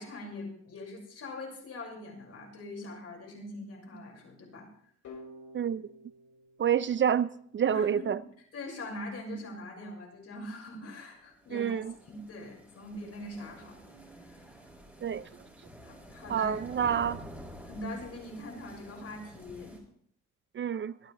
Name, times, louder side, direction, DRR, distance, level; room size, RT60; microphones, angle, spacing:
voice 1, 0.0-4.7 7.7-8.2 8.5-11.8 12.1-13.8 14.3-14.4 15.8-17.0 17.6-19.7, left 1 dB, 55° left, 5.9 m, -42 dB
sound 1, 5.0-7.8, left 1 dB, 70° left, 4.7 m, -51 dB
voice 2, 5.5-5.9 6.6-8.2 11.5-11.9 15.0-15.3 16.3-17.2 20.5-20.9, right 8 dB, 40° right, 0.5 m, -28 dB
sound 2, 10.9-19.8, equal, 5° right, 5.3 m, -49 dB
23.5 x 9.6 x 3.4 m
cardioid pair, 90°, 30 cm